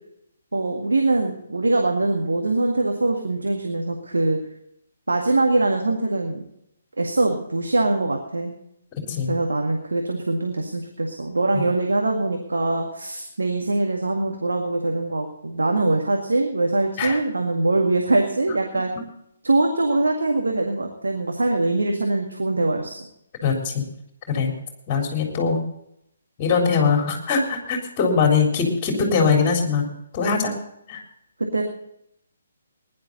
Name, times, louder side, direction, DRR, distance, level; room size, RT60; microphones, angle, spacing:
voice 1, 0.5-4.4 5.1-6.4 7.0-8.5 9.3-18.9 19.4-23.0 31.4-31.6, right 2 dB, 70° right, 2 dB, 1.9 m, -23 dB
voice 2, 9.0-9.3 11.5-11.6 17.0-17.2 19.0-19.1 23.4-23.8 24.3-24.5 24.9-25.6 26.4-29.9 30.1-30.6 30.9-31.0, left 5 dB, 25° left, 2 dB, 3.7 m, -22 dB
19.5 x 11.0 x 4.0 m, 0.76 s
figure-of-eight pair, 135°, 0 cm